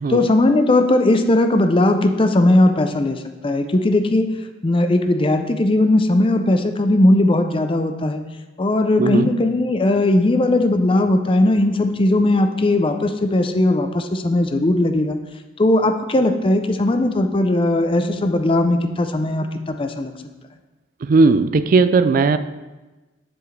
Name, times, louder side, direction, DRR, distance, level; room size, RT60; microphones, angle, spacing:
voice 1, 0.1-4.3 4.6-8.2 8.6-15.2 15.6-20.1, left 1 dB, 30° left, 7 dB, 0.5 m, -18 dB
voice 2, 21.0-22.4, right 4 dB, 50° right, 12 dB, 0.3 m, -16 dB
7.8 x 7.1 x 3.3 m, 1.1 s
head